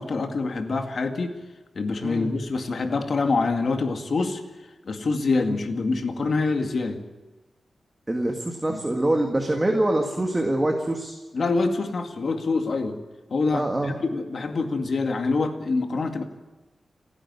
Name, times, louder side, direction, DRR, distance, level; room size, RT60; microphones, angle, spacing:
voice 1, 0.0-1.3 1.8-4.4 4.9-7.0 8.7-8.8 11.3-13.0 13.3-16.2, left 3 dB, 55° left, 5 dB, 2.1 m, -25 dB
voice 2, 8.1-11.2 13.5-13.9, right 1 dB, 15° right, 2 dB, 1.9 m, -24 dB
30.0 x 10.5 x 9.7 m, 1.1 s
wide cardioid pair, 160°, 0 cm